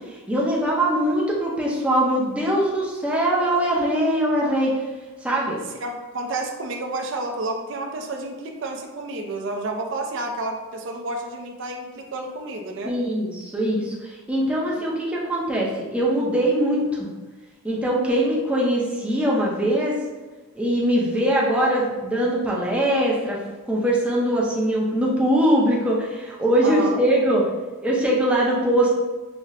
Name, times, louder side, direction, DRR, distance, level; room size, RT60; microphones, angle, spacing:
voice 1, 0.3-4.7 5.2-5.6 12.8-17.1 17.6-19.9 20.6-23.4 23.7-27.4 27.8-28.9, right 1 dB, 5° right, -4 dB, 0.5 m, -22 dB
voice 2, 5.8-12.9 26.6-27.0, right 2 dB, 55° right, 2 dB, 0.4 m, -30 dB
5.6 x 2.1 x 2.4 m, 1.2 s
head